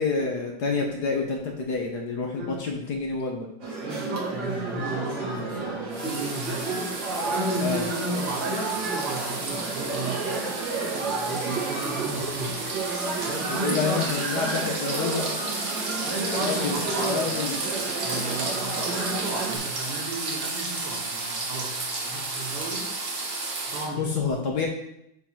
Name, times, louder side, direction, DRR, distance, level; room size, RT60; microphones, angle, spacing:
voice 1, 0.0-3.5 7.6-7.9 13.5-15.3 16.2-17.6 23.9-24.7, left 4 dB, 55° left, 1 dB, 1.3 m, -28 dB
voice 2, 2.3-2.7 3.8-6.9 7.3-10.4 10.7-12.6 13.3-14.2 16.0-17.2 18.0-22.9 23.7-24.4, right 2 dB, 80° right, -1 dB, 2.4 m, -33 dB
sound 1, 3.6-19.6, right 3 dB, 55° right, 2.4 m, -32 dB
sound 2, 5.9-23.9, right 3 dB, 40° right, 0.9 m, -32 dB
10.0 x 3.8 x 4.5 m, 0.80 s
omnidirectional pair, 2.4 m